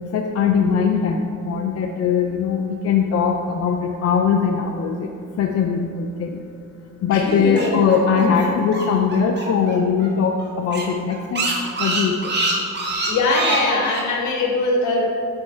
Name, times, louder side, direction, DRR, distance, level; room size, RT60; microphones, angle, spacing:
voice 1, 0.1-5.1 5.4-6.4 7.0-11.5 11.8-12.3, left 6 dB, 55° left, 2 dB, 0.5 m, -20 dB
voice 2, 7.1-7.7 8.1-8.2 13.1-15.1, left 2 dB, 70° left, 0 dB, 1.2 m, -21 dB
sound 1, 7.3-9.7 10.0-10.1 10.4-10.5 10.7-14.0, right 2 dB, 35° right, 1.2 m, -25 dB
5.3 x 3.5 x 5.4 m, 2.3 s
cardioid pair, 90°, 30 cm